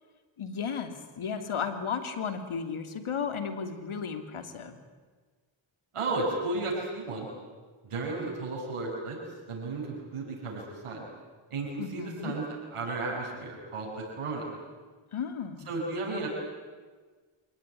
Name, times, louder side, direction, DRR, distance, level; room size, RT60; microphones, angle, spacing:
voice 1, 0.4-4.8 11.8-12.3 15.1-15.7, left 6 dB, 75° left, 8 dB, 2.9 m, -34 dB
voice 2, 5.9-7.3 7.8-9.2 9.5-11.0 11.5-12.4 12.7-14.5 15.7-16.3, right 3 dB, 85° right, -2 dB, 7.5 m, -33 dB
27.5 x 18.0 x 9.9 m, 1.4 s
cardioid pair, 65°, 50 cm